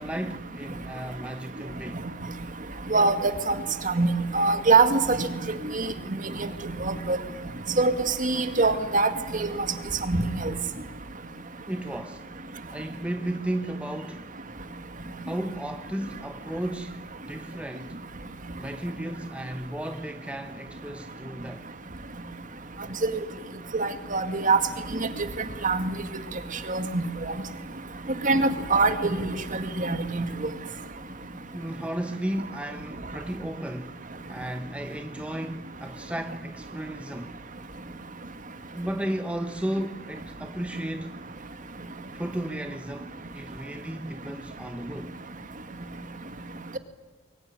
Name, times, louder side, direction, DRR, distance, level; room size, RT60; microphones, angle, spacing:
voice 1, 0.0-2.0 11.6-12.2 12.7-14.3 15.2-18.0 18.6-21.7 31.5-34.0 34.3-37.4 38.7-41.2 42.1-45.1, right 1 dB, 5° right, 1.0 m, -34 dB
voice 2, 2.9-3.5 3.9-4.1 4.3-5.3 5.7-5.9 6.8-7.2 7.8-7.9 8.2-9.1 9.4-9.5 10.1-10.5 23.7-24.6 25.6-25.8 26.7-27.0 28.2-29.3 29.8-30.3, right 3 dB, 40° right, 2.0 m, -23 dB
24.0 x 22.5 x 9.8 m
head